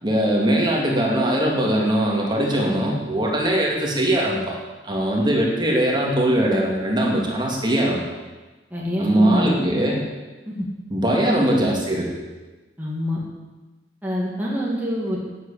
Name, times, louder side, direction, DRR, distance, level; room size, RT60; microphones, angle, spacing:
voice 1, 0.0-4.6 4.8-8.0 9.0-10.0 10.9-12.1, right 1 dB, 25° right, -2 dB, 2.5 m, -21 dB
voice 2, 8.7-9.6 10.5-10.7 12.8-13.2 14.0-15.2, equal, 10° right, -5 dB, 2.3 m, -26 dB
11.5 x 8.2 x 8.5 m, 1.2 s
head